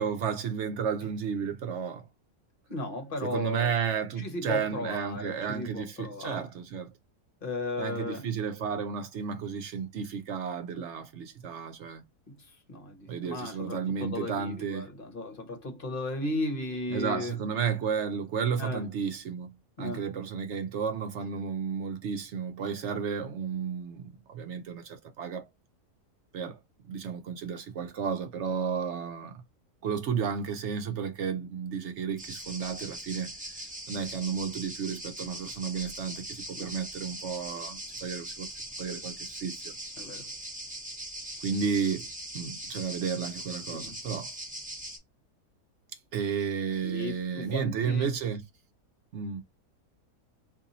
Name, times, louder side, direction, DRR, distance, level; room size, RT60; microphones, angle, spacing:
voice 1, 0.0-2.1 3.2-6.9 7.8-12.0 13.1-14.9 16.9-25.5 26.3-26.6 26.9-29.4 29.8-39.7 41.4-42.1 42.3-44.3 46.1-48.4 49.1-49.4, right 6 dB, 65° right, 0.7 m, -32 dB
voice 2, 2.7-3.7 4.2-6.4 7.4-8.2 10.8-10.9 12.7-17.3 18.6-18.8 19.8-20.0 36.5-36.7 40.0-40.3 43.7-43.9 46.8-48.1, left 2 dB, 45° left, 0.9 m, -35 dB
sound 1, 32.2-45.0, right 1 dB, 5° right, 0.7 m, -41 dB
2.6 x 2.6 x 3.8 m
omnidirectional pair, 1.6 m